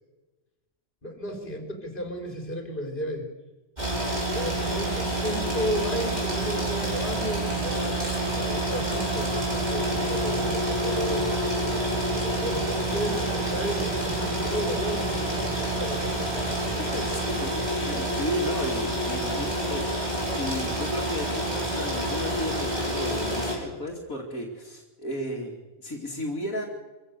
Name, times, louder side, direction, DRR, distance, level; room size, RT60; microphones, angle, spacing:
voice 1, 1.0-3.3 4.3-11.3 12.4-16.2, equal, 35° left, 3 dB, 4.2 m, -34 dB
sound 1, 3.8-23.5, right 1 dB, 30° right, 5.5 m, -28 dB
sound 2, 9.9-18.5, right 4 dB, 80° right, 3.4 m, -40 dB
voice 2, 16.9-19.9 20.3-26.7, equal, 70° left, 0 dB, 3.2 m, -34 dB
25.5 x 15.5 x 6.9 m, 1.2 s
omnidirectional pair, 1.5 m